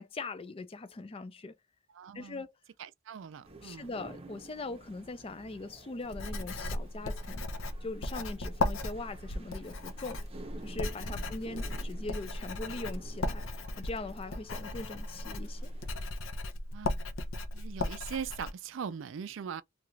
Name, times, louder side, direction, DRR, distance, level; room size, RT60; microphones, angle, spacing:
voice 1, 0.0-1.6 2.1-2.5 3.6-7.4 7.8-10.2 10.6-13.4 13.8-15.7, left 2 dB, 25° left, 0.4 m, -41 dB
voice 2, 1.9-2.4 2.8-4.0 11.0-11.3 16.7-17.0 17.5-19.6, right 7 dB, 65° right, 0.4 m, -41 dB
sound 1, 3.4-16.0, right 2 dB, 30° right, 0.7 m, -52 dB
Writing, 6.1-18.5, left 2 dB, 75° left, 0.6 m, -36 dB
2.8 x 2.4 x 3.1 m
head